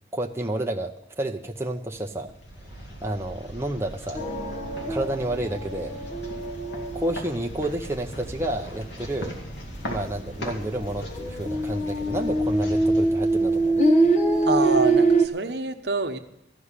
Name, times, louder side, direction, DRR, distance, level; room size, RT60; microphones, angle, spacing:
voice 1, 0.1-2.3 3.0-4.2 4.9-6.0 6.9-9.4 9.8-13.8, right 1 dB, 15° right, 1 dB, 0.6 m, -30 dB
sound 1, 1.9-13.9, equal, 80° left, 2.3 m, -39 dB
sound 2, 4.1-8.1 8.4-9.0 9.4-9.5 9.8-15.3, right 2 dB, 40° left, 1.1 m, -24 dB
voice 2, 14.4-16.2, right 3 dB, 65° right, 7 dB, 1.0 m, -27 dB
13.5 x 6.3 x 9.7 m, 0.81 s
head